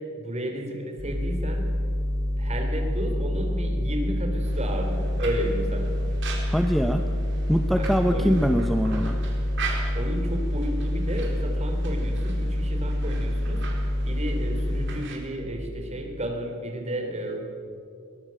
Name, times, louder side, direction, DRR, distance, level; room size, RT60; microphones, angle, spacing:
voice 1, 0.0-1.7 2.4-5.9 7.7-8.4 9.9-13.6 14.0-17.4, equal, 30° right, 3 dB, 3.4 m, -32 dB
sound 1, 1.0-14.9, left 1 dB, 30° left, 6.0 m, -27 dB
sound 2, 4.4-15.2, right 5 dB, 60° right, 3.9 m, -41 dB
voice 2, 6.5-7.0 7.5-9.2, equal, ahead, 6 dB, 0.7 m, -23 dB
22.5 x 18.0 x 7.6 m, 2.6 s
head